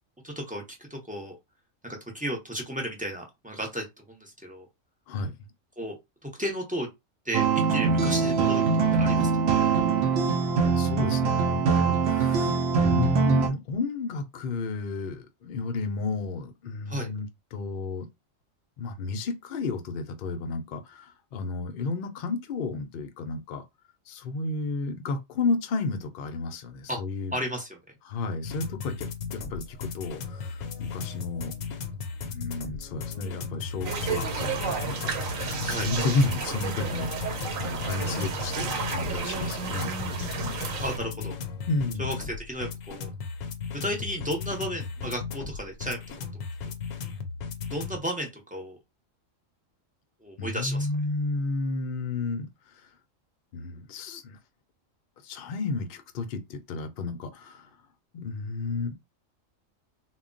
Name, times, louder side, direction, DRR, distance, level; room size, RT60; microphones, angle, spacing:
voice 1, 0.2-1.4 1.8-4.7 5.8-6.0 6.2-6.9 7.2-8.6 8.9-9.4 16.9-17.1 26.9-27.0 27.3-27.8 35.7-35.9 39.1-39.6 40.8-41.4 42.0-43.1 43.7-46.4 47.7-48.8 50.2-50.9, equal, 10° right, 0.5 m, -34 dB
sound 1, 7.3-13.5, right 5 dB, 65° right, 0.7 m, -23 dB
voice 2, 10.2-17.3 17.5-18.1 18.8-23.6 24.1-27.3 28.1-29.1 29.3-31.5 32.2-37.1 37.6-40.5 41.7-42.2 50.4-52.5 53.5-54.4 55.2-57.7 58.1-59.0, left 3 dB, 55° left, 0.7 m, -32 dB
sound 2, 28.4-48.0, left 5 dB, 85° left, 1.0 m, -36 dB
sound 3, 33.8-41.0, right 5 dB, 85° right, 1.1 m, -32 dB
2.2 x 2.2 x 3.7 m
omnidirectional pair, 1.3 m